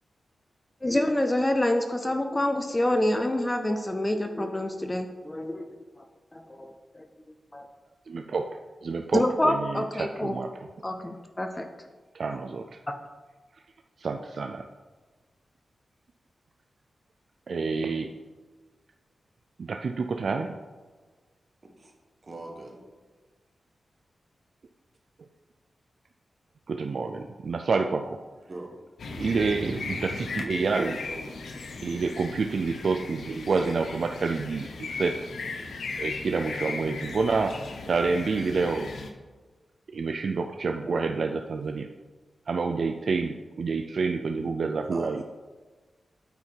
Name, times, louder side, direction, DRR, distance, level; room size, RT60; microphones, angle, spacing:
voice 1, 0.8-5.8 6.3-6.7 7.5-7.6 9.1-10.3 10.8-11.7, left 1 dB, 15° left, 5 dB, 0.4 m, -27 dB
voice 2, 8.1-8.5 8.8-10.5 12.1-12.6 14.0-14.7 17.5-18.1 19.6-20.5 26.7-28.2 29.2-31.0 31.8-35.1 36.0-37.5 37.9-38.9 39.9-41.9 42.5-45.2, right 4 dB, 50° right, 6 dB, 0.3 m, -28 dB
voice 3, 22.2-22.8 28.4-28.7 31.0-31.3 44.9-45.2, right 2 dB, 35° right, 1 dB, 1.3 m, -41 dB
sound 1, 29.0-39.1, left 3 dB, 85° left, 0.7 m, -37 dB
8.4 x 4.5 x 4.4 m, 1.3 s
wide cardioid pair, 165°, 0 cm